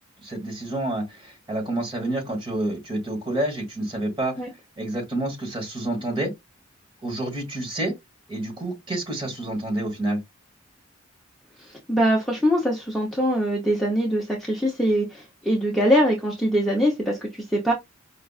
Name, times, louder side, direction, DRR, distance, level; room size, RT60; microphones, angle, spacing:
voice 1, 0.2-4.3 4.8-6.3 7.0-7.9 8.3-10.2, right 1 dB, 25° right, 1.7 m, -28 dB
voice 2, 11.7-17.7, equal, ahead, 0.7 m, -23 dB
5.0 x 2.4 x 2.4 m
head